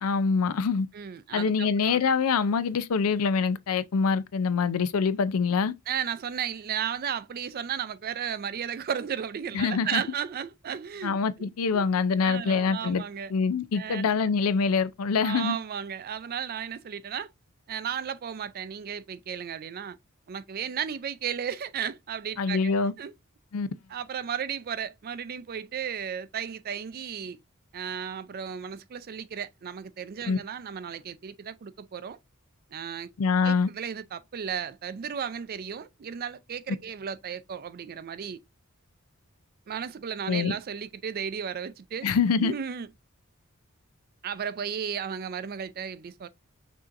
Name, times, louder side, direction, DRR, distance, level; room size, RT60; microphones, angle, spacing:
voice 1, 0.0-0.9 1.3-5.7 9.5-10.0 11.0-13.0 13.3-15.6 22.4-22.9 23.5-23.7 30.3-30.4 33.2-33.7 40.3-40.5 42.0-42.5, left 5 dB, 85° left, 0.5 m, -25 dB
voice 2, 0.9-2.0 5.9-11.8 12.2-13.3 13.7-14.1 15.2-17.3 17.7-20.0 20.3-23.1 23.9-27.4 27.7-32.2 32.7-33.1 33.4-38.4 39.7-42.1 42.4-42.9 44.2-46.3, right 8 dB, 45° right, 0.4 m, -34 dB
6.1 x 2.8 x 2.5 m
head